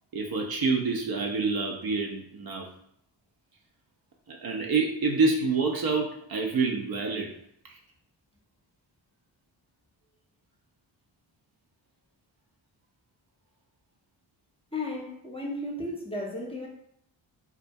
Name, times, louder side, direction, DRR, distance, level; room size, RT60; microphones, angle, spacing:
voice 1, 0.1-2.7 4.3-7.3 7.6-7.8, right 4 dB, 50° right, 0.5 m, -27 dB
voice 2, 14.7-16.7, left 1 dB, 10° left, 0.6 m, -34 dB
2.3 x 2.1 x 2.6 m
supercardioid pair, 40°, 49 cm